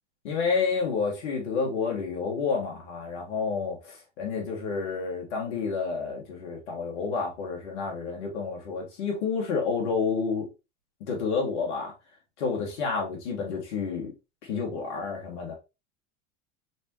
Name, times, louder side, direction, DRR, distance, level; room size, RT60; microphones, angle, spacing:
voice 1, 0.2-10.5 11.1-11.9 12.4-14.1 14.4-15.5, left 5 dB, 80° left, 1.8 m, -29 dB
4.1 x 3.5 x 3.0 m
hypercardioid pair, 110°, 34 cm